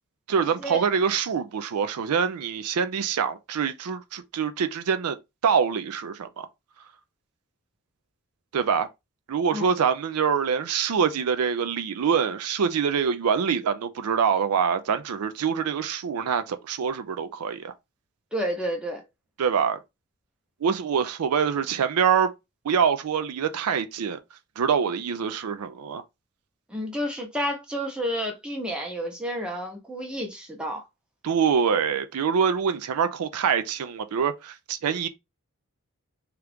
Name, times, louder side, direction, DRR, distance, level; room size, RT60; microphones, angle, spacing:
voice 1, 0.3-5.2 5.4-6.5 8.5-8.9 9.3-17.7 19.4-19.8 20.6-22.3 22.6-24.2 24.6-26.0 31.2-35.1, right 6 dB, 90° right, 0.4 m, -25 dB
voice 2, 18.3-19.0 26.7-30.9, equal, 5° right, 0.7 m, -30 dB
2.9 x 2.4 x 3.4 m
head